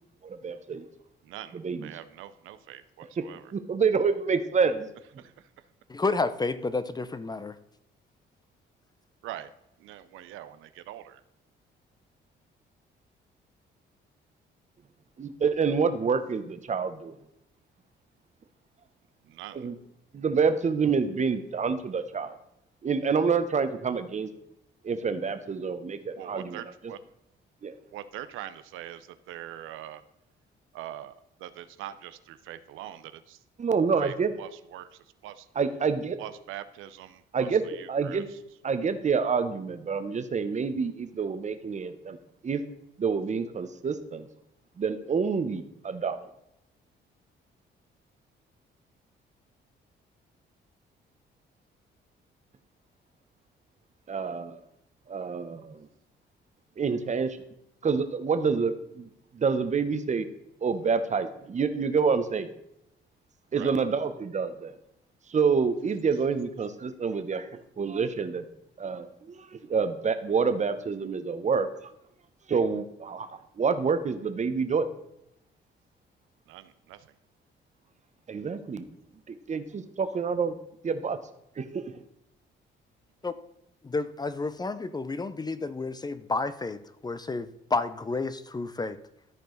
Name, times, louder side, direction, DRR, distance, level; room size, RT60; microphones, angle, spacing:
voice 1, 0.2-0.9 1.5-1.9 3.2-3.3 3.5-4.9 15.2-17.2 19.5-19.7 20.1-22.3 22.8-24.3 24.8-26.6 27.6-27.7 33.6-34.3 35.6-36.2 37.3-37.6 37.9-38.3 38.6-42.2 42.4-42.6 43.0-44.3 44.8-46.2 54.1-54.6 55.1-55.9 56.8-57.4 57.8-60.3 60.6-62.5 63.5-64.8 65.3-67.5 67.8-68.5 68.8-71.9 72.5-74.9 78.3-78.9 79.3-80.5 80.8-81.2 81.6-81.9, right 5 dB, 35° right, 0.9 m, -27 dB
voice 2, 1.2-3.5 5.2-5.6 9.2-9.5 9.8-11.2 19.2-19.7 26.2-27.0 27.9-30.0 30.7-33.4 34.0-35.5 36.2-38.4 63.5-63.8 76.5-77.1, right 12 dB, 90° right, 0.6 m, -43 dB
voice 3, 5.9-7.6 83.2-83.3 83.8-89.0, left 3 dB, 20° left, 0.5 m, -30 dB
13.5 x 4.7 x 3.9 m
cardioid pair, 90°, 20 cm